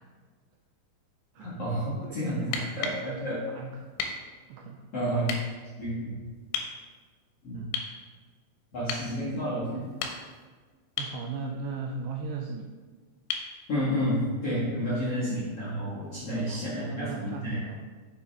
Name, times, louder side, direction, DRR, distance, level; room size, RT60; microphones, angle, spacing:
voice 1, 1.4-3.4 4.9-5.3 5.8-6.2 7.4-7.6 8.7-9.9 13.7-16.9 17.1-17.6, equal, 60° left, -10 dB, 1.6 m, -30 dB
voice 2, 2.0-3.9 4.5-4.9 7.5-7.8 9.5-9.8 11.0-12.8 15.1-15.2 16.3-17.8, right 4 dB, 85° right, 2 dB, 2.4 m, -38 dB
sound 1, 2.4-3.1 4.0-4.2 5.3-5.4 6.5-6.7 7.7-8.0 8.9-9.1 9.8-10.4 11.0-11.2 13.3-13.5 15.4-15.5, left 6 dB, 85° left, 3.2 m, -33 dB
7.0 x 6.8 x 3.4 m, 1.4 s
omnidirectional pair, 5.3 m